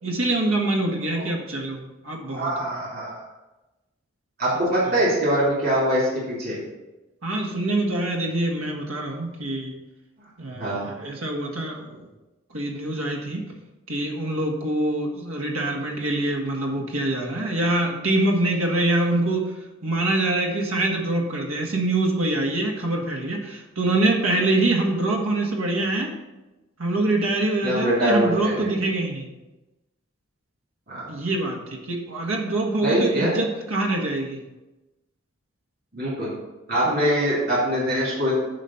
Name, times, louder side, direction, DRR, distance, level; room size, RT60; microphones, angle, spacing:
voice 1, 0.0-2.8 4.8-5.0 7.2-9.7 10.4-12.1 12.5-13.4 13.9-19.6 19.8-26.1 26.8-29.3 31.1-34.4 36.8-37.1, right 2 dB, 85° right, 1 dB, 1.6 m, -25 dB
voice 2, 2.4-3.2 4.4-6.6 10.5-10.9 27.6-28.7 30.9-31.1 32.8-33.3 35.9-36.3 36.7-38.4, equal, 45° right, -7 dB, 2.8 m, -23 dB
8.6 x 5.1 x 5.7 m, 1.0 s
head